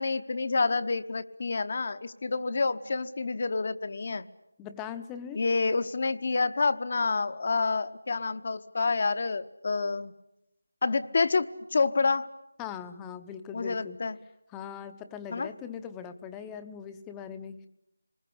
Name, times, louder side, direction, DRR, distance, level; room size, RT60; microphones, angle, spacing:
voice 1, 0.0-4.3 5.3-10.1 10.8-12.3 13.5-14.2 15.3-15.5, left 4 dB, 45° left, 12 dB, 1.0 m, -28 dB
voice 2, 4.6-5.4 12.6-14.0 14.5-17.7, left 8 dB, 10° left, 9 dB, 0.9 m, -40 dB
27.0 x 20.5 x 8.5 m, 0.85 s
figure-of-eight pair, 165°, 0 cm